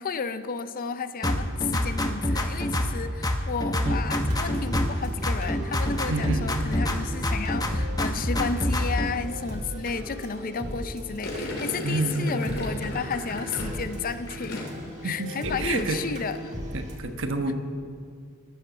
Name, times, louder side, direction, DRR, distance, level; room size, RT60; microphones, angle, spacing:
voice 1, 0.0-14.7 15.0-16.6, left 5 dB, 40° left, 12 dB, 0.5 m, -32 dB
sound 1, 1.2-3.0 3.2-5.0 5.2-7.0 7.2-9.1, left 1 dB, 15° left, 0.9 m, -26 dB
sound 2, 4.1-17.0, equal, 30° right, 2.0 m, -38 dB
voice 2, 6.1-6.5 11.8-12.6 15.0-16.0 16.7-17.5, right 2 dB, 60° right, 6 dB, 1.2 m, -29 dB
Gurgling, 11.2-15.0 15.3-15.7, left 1 dB, 65° left, 3.0 m, -36 dB
13.0 x 10.0 x 7.2 m, 2.3 s
head